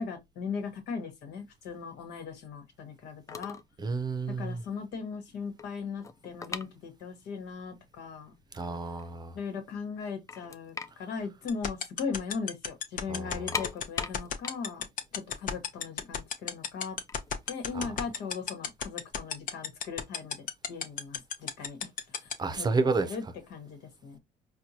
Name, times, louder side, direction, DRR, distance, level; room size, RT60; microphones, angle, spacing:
voice 1, 0.0-3.6 4.3-8.3 9.3-14.9 15.1-17.0 17.5-22.7 23.0-23.2 23.5-24.2, left 5 dB, 80° left, 1.2 m, -38 dB
sound 1, 3.0-3.1 3.3-3.7 4.0-4.2 4.7-4.8 5.1-7.4 7.6-7.7 8.4-8.5 8.8-9.6 9.9-10.0 10.3-12.3 12.5-12.7 13.2-16.2 16.9-18.6, left 4 dB, 20° left, 0.4 m, -40 dB
voice 2, 3.8-4.6 8.5-9.3 13.1-13.4 17.7-17.9 22.4-23.1, right 3 dB, 25° right, 0.6 m, -30 dB
sound 2, 11.5-22.3, left 7 dB, 50° left, 0.7 m, -31 dB
4.4 x 2.3 x 2.7 m
cardioid pair, 110°, 17 cm